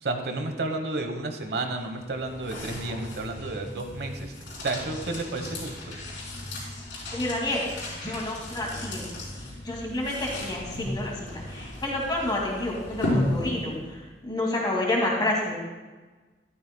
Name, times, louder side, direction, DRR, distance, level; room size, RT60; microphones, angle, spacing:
voice 1, 0.0-4.3 4.6-6.0, right 2 dB, 60° right, 6 dB, 1.1 m, -31 dB
sound 1, 1.8-13.9, left 1 dB, 90° left, 3.7 m, -35 dB
voice 2, 7.1-7.6 7.9-9.1 9.6-15.5, left 1 dB, 25° left, -2 dB, 2.3 m, -29 dB
12.5 x 12.5 x 2.3 m, 1.3 s
head